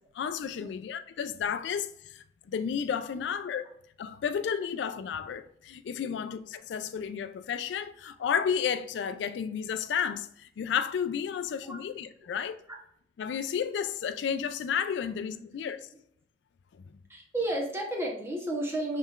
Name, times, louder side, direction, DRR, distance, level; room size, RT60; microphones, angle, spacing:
voice 1, 0.1-3.6 4.0-12.6 13.2-15.8, left 7 dB, 70° left, 0.3 m, -32 dB
voice 2, 17.1-19.0, right 1 dB, 15° right, 0.9 m, -33 dB
5.4 x 3.2 x 2.4 m
head